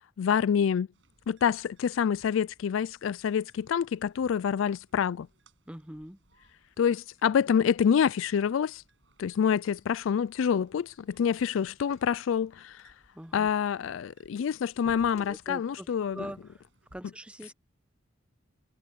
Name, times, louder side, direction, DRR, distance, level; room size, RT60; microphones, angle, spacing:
voice 1, 0.2-0.9 1.3-5.3 6.8-8.8 9.2-12.8 13.3-16.3, left 7 dB, 75° left, 0.3 m, -27 dB
sound 1, 0.9-17.0, right 1 dB, 65° right, 7.8 m, -66 dB
voice 2, 5.7-6.2 13.2-13.5 15.1-15.9 16.1-16.4 16.9-17.5, right 1 dB, 5° right, 0.8 m, -42 dB
sound 2, 9.8-13.2 13.5-13.6 13.9-14.0 14.4-16.4, left 3 dB, 90° left, 2.5 m, -58 dB
head